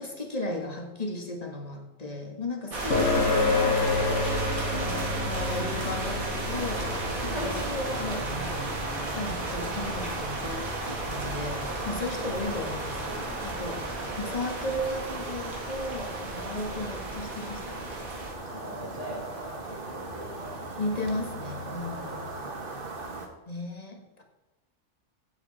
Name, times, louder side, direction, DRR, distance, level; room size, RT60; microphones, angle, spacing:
voice 1, 0.0-7.0 7.3-8.8 9.1-17.9 18.8-19.0 20.8-22.2 23.5-24.2, left 2 dB, 30° left, 3 dB, 1.8 m, -35 dB
voice 2, 2.7-3.2 7.2-7.7 12.1-12.7 13.9-14.2 18.4-21.0 21.7-21.9 22.3-22.6, equal, 55° right, -5 dB, 5.3 m, -43 dB
sound 1, 2.7-18.3, right 2 dB, 80° right, 2.5 m, -34 dB
sound 2, 2.9-17.8, left 3 dB, 60° left, 1.8 m, -33 dB
sound 3, 6.5-23.3, right 2 dB, 40° right, 1.6 m, -38 dB
15.5 x 8.0 x 4.2 m, 1.1 s
omnidirectional pair, 1.4 m